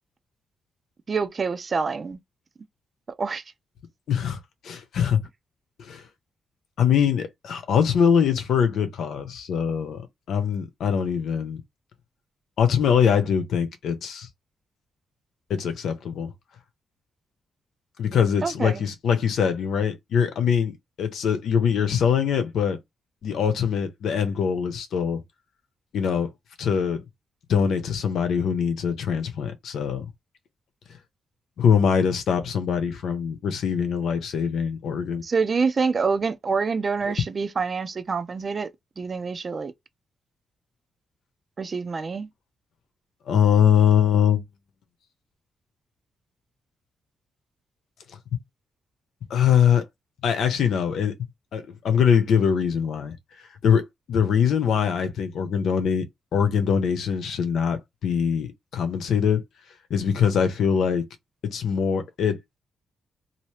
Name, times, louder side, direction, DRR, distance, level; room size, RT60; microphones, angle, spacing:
voice 1, 1.1-2.2 3.2-3.4 18.4-18.8 35.2-38.7 39.0-39.7 41.6-42.3, right 5 dB, 35° right, 0.5 m, -26 dB
voice 2, 4.1-5.2 5.8-6.0 6.8-11.6 12.6-14.3 15.5-16.3 18.0-22.8 23.2-25.2 25.9-26.3 26.6-27.0 27.5-30.0 31.6-35.2 37.0-37.1 43.3-44.4 48.3-48.4 49.3-49.9 50.2-51.2 51.5-53.2 53.6-56.1 56.3-59.4 59.9-61.1 61.5-62.4, left 7 dB, 80° left, 0.9 m, -23 dB
2.9 x 2.7 x 3.2 m
wide cardioid pair, 140°, 0 cm